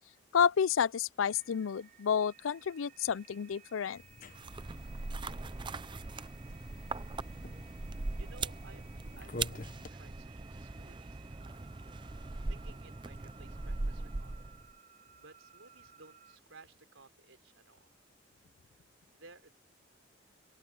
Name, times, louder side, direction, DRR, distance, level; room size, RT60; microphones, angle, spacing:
voice 1, 0.3-4.0, left 7 dB, 90° left, 0.4 m, -30 dB
sound 1, 1.2-16.4, right 8 dB, 45° right, 6.1 m, -60 dB
sound 2, 3.9-9.9, left 2 dB, 45° left, 1.2 m, -50 dB
sound 3, 4.3-14.7, right 3 dB, 25° right, 0.5 m, -40 dB
voice 2, 8.2-8.9 9.2-11.7 12.5-14.4 15.2-17.9 19.1-19.5, right 3 dB, 85° right, 4.1 m, -57 dB
open air
head